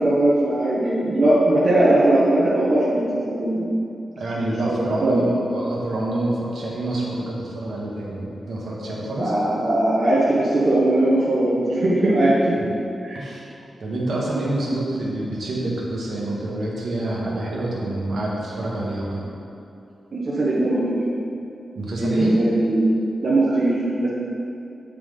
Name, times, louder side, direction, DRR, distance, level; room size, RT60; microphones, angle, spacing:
voice 1, 0.0-3.7 4.4-5.3 9.2-12.6 13.0-13.2 20.1-21.0 22.0-22.9 23.2-24.1, right 1 dB, 50° right, -8 dB, 1.1 m, -20 dB
voice 2, 4.1-9.3 13.1-13.5 13.8-19.3 21.7-22.3, right 1 dB, 70° right, -4 dB, 1.4 m, -27 dB
8.1 x 4.6 x 3.7 m, 2.7 s
wide cardioid pair, 120°, 0 cm